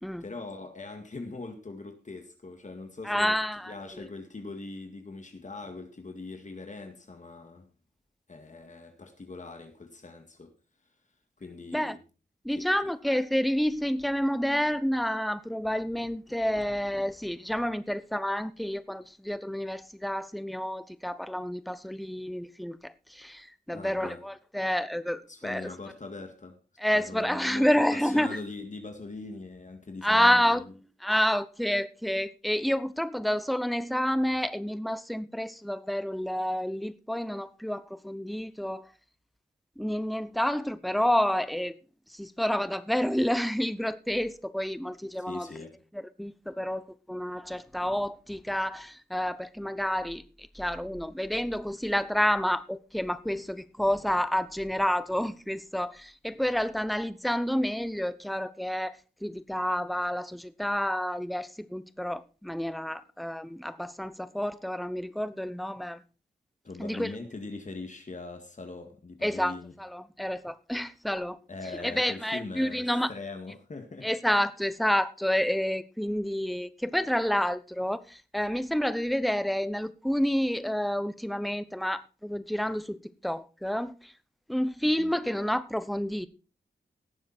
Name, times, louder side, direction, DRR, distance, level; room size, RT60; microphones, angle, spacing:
voice 1, 0.2-3.4 3.7-7.7 8.3-10.5 11.4-12.0 12.6-12.7 16.0-16.1 23.7-24.2 25.3-26.6 26.9-30.7 45.3-45.7 66.6-69.7 71.5-74.1 85.0-85.1, left 3 dB, 45° left, 2.1 m, -41 dB
voice 2, 3.0-4.0 11.7-12.0 12.4-25.7 26.8-28.4 30.0-30.6 31.0-38.9 39.8-41.7 42.1-45.5 45.9-66.0 66.8-67.1 69.2-71.4 71.8-73.1 74.0-83.0 83.2-84.1 84.5-86.3, equal, ahead, 0.9 m, -29 dB
17.5 x 7.3 x 4.4 m
wide cardioid pair, 85°, 18 cm